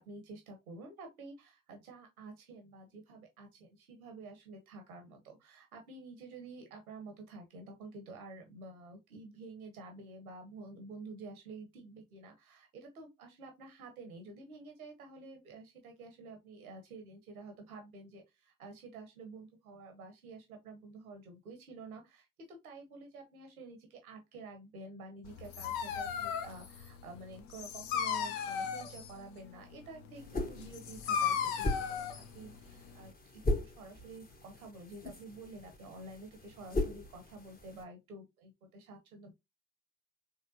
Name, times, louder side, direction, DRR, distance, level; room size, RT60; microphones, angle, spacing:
voice 1, 0.0-39.3, right 3 dB, 90° right, 0.9 m, -50 dB
Dog, 25.2-33.1, left 7 dB, 75° left, 0.7 m, -37 dB
sound 1, 30.2-37.8, left 1 dB, 20° left, 1.0 m, -39 dB
4.1 x 3.2 x 2.6 m
hypercardioid pair, 50°, 42 cm